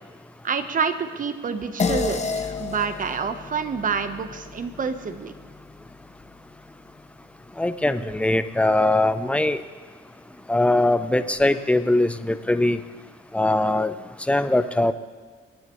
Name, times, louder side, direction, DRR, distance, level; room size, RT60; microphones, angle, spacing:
voice 1, 0.4-5.3, right 6 dB, 40° right, 9 dB, 1.0 m, -28 dB
sound 1, 1.8-6.5, left 4 dB, 35° left, 1.0 m, -31 dB
voice 2, 7.6-9.6 10.5-12.8 13.3-13.9 14.3-14.9, left 2 dB, 5° left, 11 dB, 0.6 m, -21 dB
24.0 x 10.0 x 3.1 m, 1.5 s
cardioid pair, 90°, 20 cm